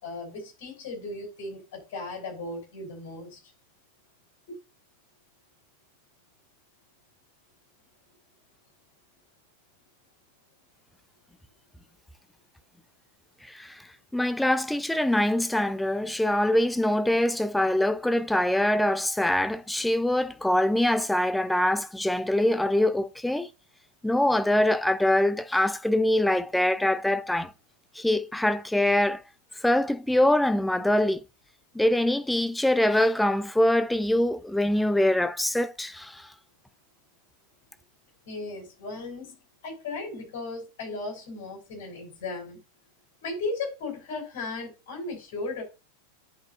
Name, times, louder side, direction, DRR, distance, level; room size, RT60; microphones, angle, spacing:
voice 1, 0.0-3.4 4.5-4.6 38.3-39.3 39.6-42.6 43.2-45.6, left 3 dB, 50° left, 5.2 m, -36 dB
voice 2, 13.4-13.9 14.1-23.5 24.0-27.5 27.9-29.2 29.6-31.2 31.7-36.3, left 1 dB, 5° left, 0.5 m, -24 dB
10.5 x 5.3 x 2.7 m
figure-of-eight pair, 90°, 0 cm